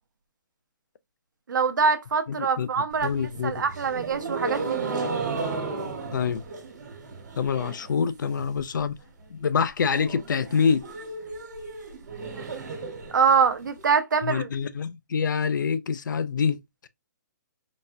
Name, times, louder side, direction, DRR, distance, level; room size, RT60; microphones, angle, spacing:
voice 1, 1.5-5.1 13.1-14.5, right 5 dB, 85° right, 0.7 m, -24 dB
voice 2, 2.3-2.7 3.0-3.6 6.1-6.4 7.4-9.0 9.3-10.9 14.2-16.9, left 6 dB, 85° left, 0.4 m, -26 dB
sound 1, 2.9-7.9 8.2-8.8 9.1-9.2 9.4-9.5 9.8-13.8, right 3 dB, 65° right, 1.2 m, -34 dB
4.1 x 2.2 x 2.5 m
hypercardioid pair, 180°, 10 cm